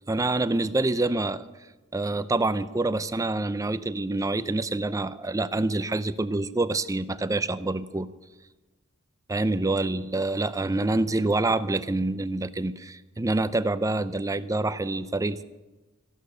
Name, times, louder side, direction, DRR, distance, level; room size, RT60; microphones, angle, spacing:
voice 1, 0.1-1.4 1.9-8.1 9.3-15.4, right 2 dB, 15° right, 14 dB, 0.5 m, -26 dB
14.5 x 11.5 x 6.7 m, 1.2 s
head